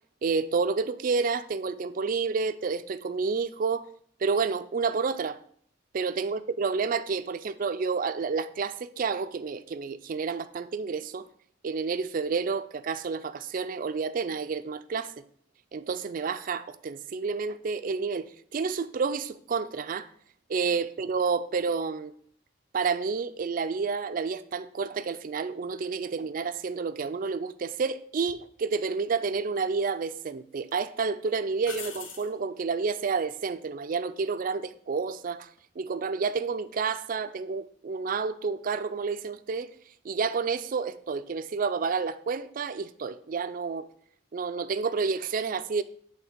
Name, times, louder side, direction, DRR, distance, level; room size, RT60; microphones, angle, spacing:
voice 1, 0.2-3.9 4.2-5.4 5.9-11.2 11.6-15.1 15.7-20.1 20.5-22.1 22.7-35.5 35.8-39.7 40.0-43.9 44.3-45.8, right 5 dB, 45° right, 0.4 m, -30 dB
sound 1, 28.3-28.4 29.6-30.2 30.6-30.7 31.6-32.3 35.4-35.8, left 5 dB, 80° left, 1.0 m, -42 dB
8.6 x 3.7 x 5.1 m
head